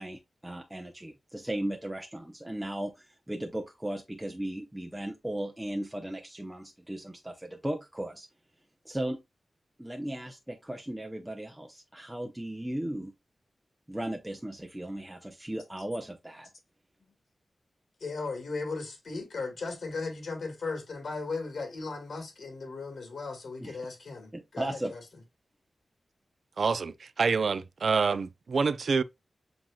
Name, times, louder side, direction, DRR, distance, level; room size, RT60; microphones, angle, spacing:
voice 1, 0.0-8.3 8.8-9.2 9.8-13.1 13.9-16.5 23.6-23.8 24.3-24.9, right 1 dB, 10° right, 0.7 m, -36 dB
voice 2, 18.0-25.0, left 3 dB, 70° left, 1.6 m, -37 dB
voice 3, 26.6-29.0, right 5 dB, 70° right, 0.4 m, -27 dB
7.5 x 2.9 x 2.3 m
wide cardioid pair, 85°, 0 cm